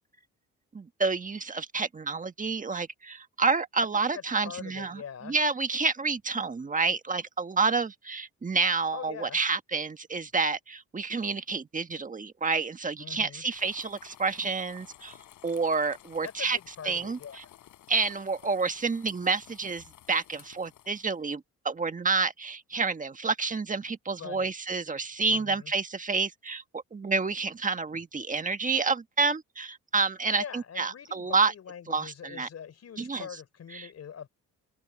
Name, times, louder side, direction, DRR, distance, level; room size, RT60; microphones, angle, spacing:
voice 1, 0.7-15.2 15.4-16.6 16.8-17.2 17.9-26.6 26.9-31.5 31.9-32.5 33.0-33.3 33.7-33.9, right 4 dB, 25° right, 1.6 m, -29 dB
voice 2, 3.9-5.4 8.9-9.4 13.0-13.4 16.2-17.4 24.2-24.5 25.3-25.7 30.3-34.3, left 8 dB, 55° left, 4.6 m, -43 dB
sound 1, 13.5-21.2, left 13 dB, 80° left, 4.7 m, -54 dB
open air
cardioid pair, 90°, 30 cm